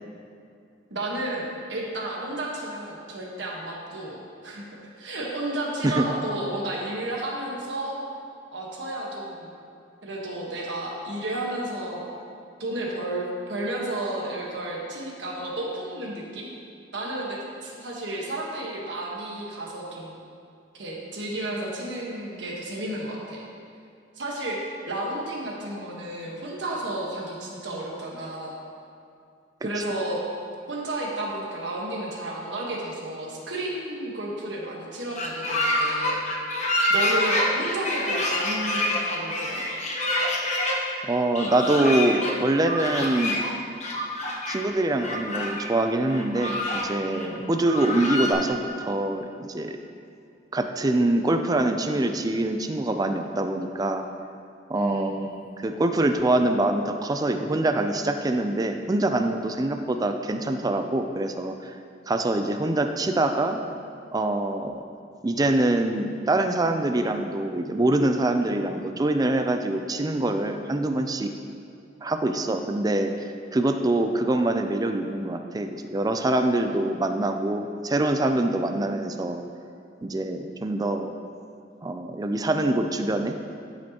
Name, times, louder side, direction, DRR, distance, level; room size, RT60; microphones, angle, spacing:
voice 1, 0.9-4.7 5.0-8.0 8.5-9.5 10.0-12.1 12.6-13.2 13.5-16.5 16.9-20.2 20.7-23.4 24.2-28.6 29.6-30.2 30.7-36.2 36.9-39.6 47.1-47.4 54.7-55.3, right 1 dB, 70° right, -2 dB, 1.4 m, -32 dB
sound 1, 35.2-40.8 41.4-42.3 42.6-43.5 43.8-44.6 45.0-45.7 46.1-46.9 47.2-47.3 47.6-48.3, left 1 dB, 40° left, 1.0 m, -27 dB
voice 2, 41.0-43.4 44.5-49.8 50.5-54.0 54.7-55.3 55.6-61.8 62.1-63.6 64.1-64.8 65.2-71.3 72.0-73.1 73.5-79.4 80.0-81.1 81.8-83.4, right 2 dB, 20° right, 6 dB, 0.4 m, -24 dB
11.5 x 5.2 x 3.0 m, 2.5 s
head